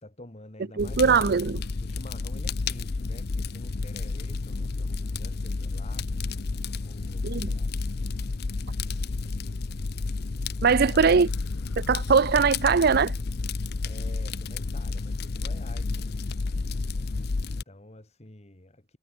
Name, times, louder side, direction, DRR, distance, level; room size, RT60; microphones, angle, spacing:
voice 1, 0.0-1.2 1.8-6.2 6.6-7.7 13.8-16.2 17.5-19.0, left 1 dB, 30° left, 1.8 m, -48 dB
Fire, 0.8-17.6, left 3 dB, 50° left, 0.6 m, -31 dB
voice 2, 0.8-1.6 7.2-7.5 10.6-11.3 11.8-13.1, right 5 dB, 50° right, 0.5 m, -21 dB
sound 1, 11.0-14.1, left 3 dB, 85° left, 0.9 m, -49 dB
head